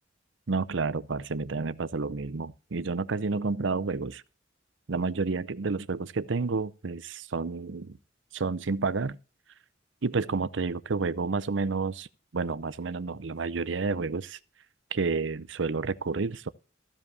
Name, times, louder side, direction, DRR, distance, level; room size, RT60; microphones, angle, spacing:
voice 1, 0.5-4.2 4.9-8.0 8.3-9.2 10.0-12.1 12.3-14.4 14.9-16.5, right 4 dB, 70° right, 0.7 m, -30 dB
14.5 x 5.3 x 6.8 m
head